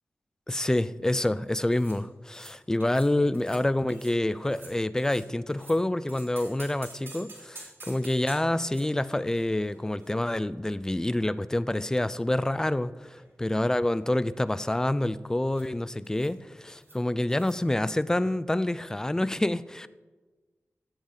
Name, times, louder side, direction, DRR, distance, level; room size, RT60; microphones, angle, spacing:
voice 1, 0.5-19.9, left 1 dB, 10° left, 0.3 m, -27 dB
sound 1, 1.7-2.0 2.3-2.5 2.8-3.1 3.3-3.6 3.9-4.2 4.4-5.8 6.1-10.8 11.0-11.1 11.9-12.8 13.1-13.3 13.6-14.1 15.5-15.7 16.0-16.4 16.7-17.0 17.3-17.6, right 2 dB, 50° right, 3.8 m, -50 dB
16.0 x 7.2 x 3.9 m
wide cardioid pair, 110°, 5 cm